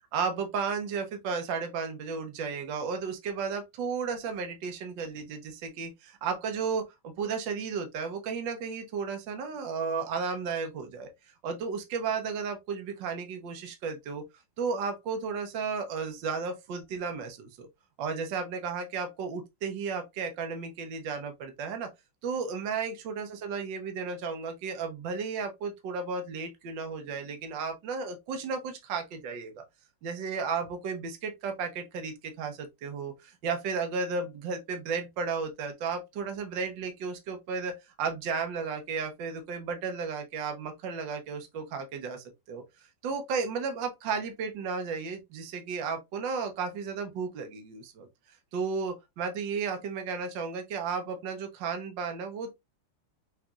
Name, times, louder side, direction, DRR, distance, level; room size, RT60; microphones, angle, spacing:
voice 1, 0.1-11.1 11.4-14.2 14.6-17.7 18.0-21.9 22.2-29.6 30.0-42.6 43.0-48.1 48.5-52.5, right 5 dB, 65° right, 1.6 m, -34 dB
5.9 x 3.3 x 2.4 m
omnidirectional pair, 2.3 m